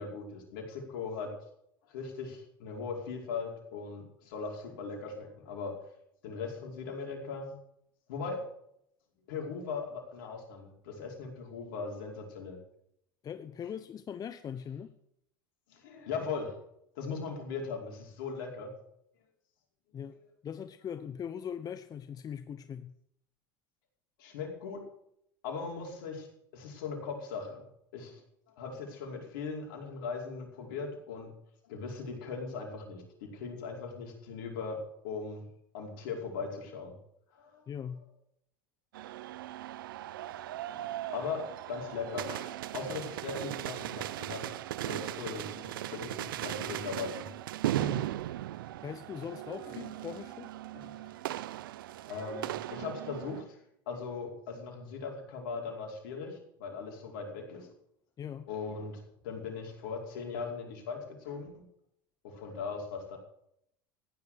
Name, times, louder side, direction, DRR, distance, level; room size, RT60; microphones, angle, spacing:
voice 1, 0.0-1.3 1.9-5.8 6.2-7.5 8.1-8.4 9.3-12.6 15.7-16.5 16.9-18.7 24.2-24.9 25.4-26.3 26.5-27.6 27.9-28.2 28.6-31.3 31.7-35.5 35.7-36.9 37.3-37.6 40.0-44.4 44.8-47.3 49.7-49.8 50.7-50.9 52.1-53.6 53.9-57.7 58.5-61.6 62.2-63.2, left 5 dB, 75° left, 1 dB, 5.2 m, -39 dB
voice 2, 13.2-14.9 19.9-20.2 20.4-22.9 37.7-38.0 47.8-48.1 48.8-50.5 58.2-58.5, left 8 dB, 35° left, 10 dB, 1.0 m, -40 dB
sound 1, 38.9-53.4, right 14 dB, 80° right, 0.6 m, -38 dB
15.5 x 11.0 x 6.5 m, 0.74 s
hypercardioid pair, 90°, 11 cm